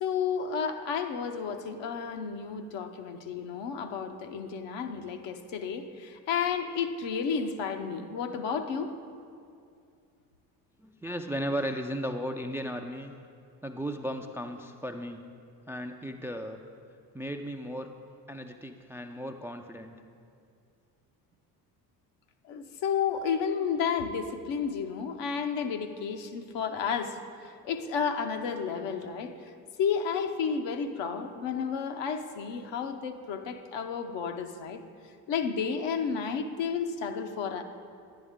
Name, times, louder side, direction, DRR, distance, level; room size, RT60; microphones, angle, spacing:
voice 1, 0.0-8.9 22.5-27.2 27.6-29.3 29.8-34.8 35.3-37.6, left 6 dB, 65° left, 6 dB, 0.9 m, -32 dB
voice 2, 10.8-13.1 13.6-15.3 15.7-16.6 17.1-17.9 18.3-20.0, equal, 5° right, 5 dB, 0.3 m, -35 dB
10.5 x 9.9 x 3.6 m, 2.4 s
hypercardioid pair, 65°, 47 cm